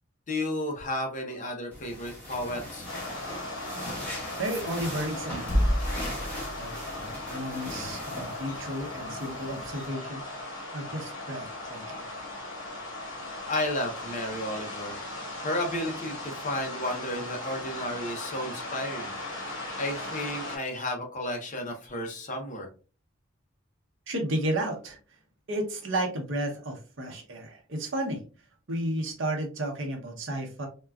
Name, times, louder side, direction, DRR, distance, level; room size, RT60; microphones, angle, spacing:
voice 1, 0.3-2.9 13.5-15.0 15.4-19.1 19.8-22.7, left 1 dB, 40° left, 2 dB, 0.7 m, -32 dB
sound 1, 1.7-9.9, equal, 10° left, 1.2 m, -34 dB
sound 2, 2.9-20.6, left 2 dB, 65° left, 1.4 m, -38 dB
voice 2, 4.4-5.8 6.6-10.2 10.7-12.1 24.1-25.0 25.5-28.2 28.7-30.7, right 1 dB, 65° right, 2 dB, 0.8 m, -33 dB
3.7 x 2.3 x 2.3 m, 0.34 s
head